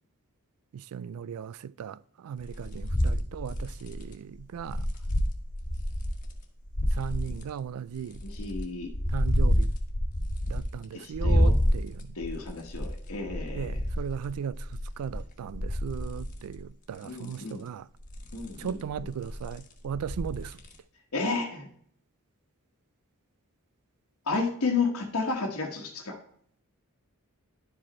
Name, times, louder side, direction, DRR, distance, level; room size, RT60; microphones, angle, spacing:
voice 1, 0.7-4.8 6.9-8.2 9.1-9.7 10.5-12.2 13.5-14.7 15.0-17.9 18.6-20.6, right 8 dB, 70° right, 0.3 m, -37 dB
sound 1, 2.4-6.3 6.7-7.4 8.0-10.8 11.1-16.6 17.0-17.5 18.0-20.8, equal, 35° left, 1.3 m, -29 dB
voice 2, 8.2-8.9 10.9-11.5 12.1-13.8 17.0-17.6 18.3-18.8 21.1-21.7 24.3-26.2, left 4 dB, 70° left, 1.3 m, -32 dB
11.0 x 5.1 x 4.2 m
head